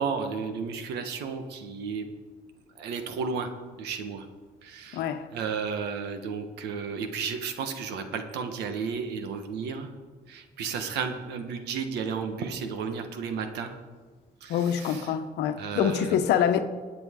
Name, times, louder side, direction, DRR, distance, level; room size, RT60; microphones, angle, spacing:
voice 1, 0.0-2.0 2.8-3.5 3.8-4.3 4.6-5.0 5.3-9.9 10.3-13.7 14.4-15.1 15.6-16.2, right 5 dB, 80° right, 1.5 m, -33 dB
voice 2, 4.9-5.3 14.5-16.6, left 8 dB, 80° left, 1.0 m, -25 dB
20.0 x 8.9 x 3.8 m
cardioid pair, 110°, 17 cm